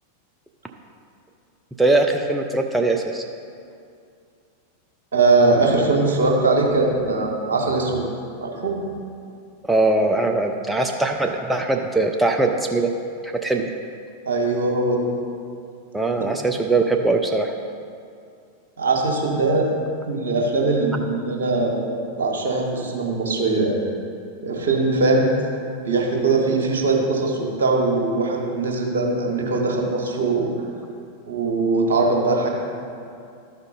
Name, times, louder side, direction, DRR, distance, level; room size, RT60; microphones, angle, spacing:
voice 1, 1.8-3.2 9.7-12.9 13.2-13.7 15.9-17.5, right 2 dB, 5° right, 2 dB, 0.5 m, -21 dB
voice 2, 5.1-8.0 8.4-8.8 14.2-15.1 18.8-19.7 20.1-23.8 24.4-25.3 25.8-30.5 31.3-32.5, right 3 dB, 65° right, 0 dB, 1.4 m, -21 dB
12.5 x 5.1 x 4.0 m, 2.4 s
figure-of-eight pair, 90°, 0 cm